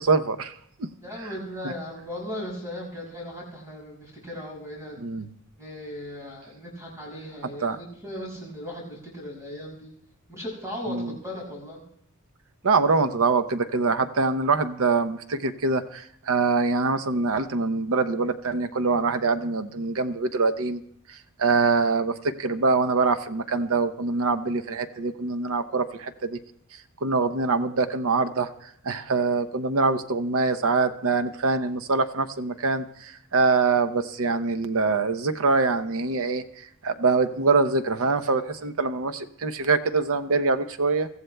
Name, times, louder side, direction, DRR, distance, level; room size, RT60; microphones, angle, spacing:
voice 1, 0.0-0.9 1.6-1.7 5.0-5.3 7.6-7.8 10.9-11.1 12.6-20.8 21.1-26.4 27.0-28.5 28.8-41.1, right 4 dB, 65° right, 11 dB, 0.7 m, -24 dB
voice 2, 1.0-5.1 5.6-9.9 10.3-11.8, left 1 dB, 15° right, -2 dB, 6.0 m, -37 dB
23.5 x 14.5 x 2.2 m, 0.70 s
head